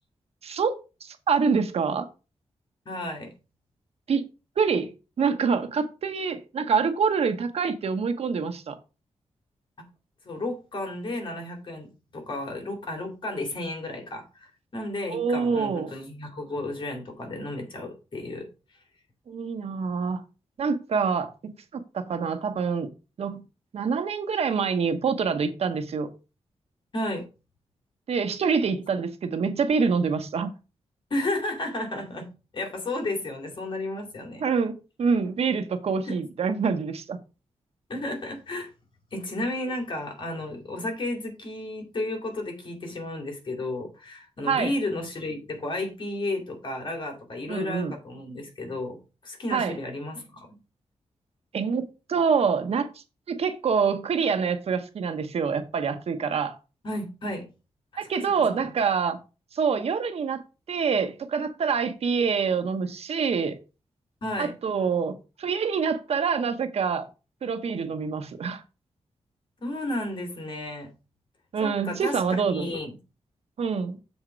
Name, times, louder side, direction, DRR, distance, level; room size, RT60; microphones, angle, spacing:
voice 1, 1.0-2.1 4.1-4.2 4.6-8.8 15.1-15.9 19.3-20.2 20.6-22.9 23.2-23.4 23.7-26.1 28.1-30.5 34.4-34.7 35.0-37.2 44.5-44.7 47.5-47.9 49.5-49.8 51.5-51.8 52.1-52.9 53.3-56.6 58.0-59.2 59.5-60.4 60.7-63.6 64.4-67.1 67.4-68.6 71.5-72.8 73.6-74.0, right 5 dB, 65° right, 1.0 m, -26 dB
voice 2, 2.9-3.3 10.2-11.9 12.1-18.5 26.9-27.2 31.1-32.3 32.5-34.4 36.1-36.2 37.9-38.7 39.1-49.0 49.2-50.5 56.8-57.4 57.9-58.0 58.6-58.7 64.2-64.5 69.6-70.9 71.6-72.2 72.4-72.9, left 1 dB, 45° left, 2.5 m, -33 dB
7.2 x 4.3 x 5.1 m
wide cardioid pair, 120°, 11 cm